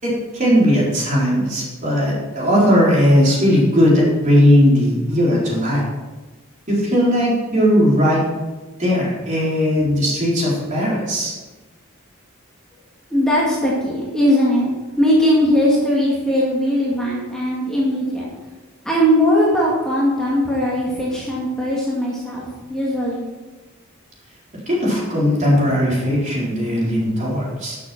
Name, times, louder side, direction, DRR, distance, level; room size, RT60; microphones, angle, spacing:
voice 1, 0.0-5.9 6.7-8.2 8.8-11.3 24.7-27.8, equal, 35° right, -5 dB, 4.1 m, -17 dB
voice 2, 13.1-14.7 15.0-18.3 18.9-23.3, equal, 5° left, -6 dB, 2.1 m, -19 dB
12.0 x 7.1 x 6.0 m, 1.2 s
head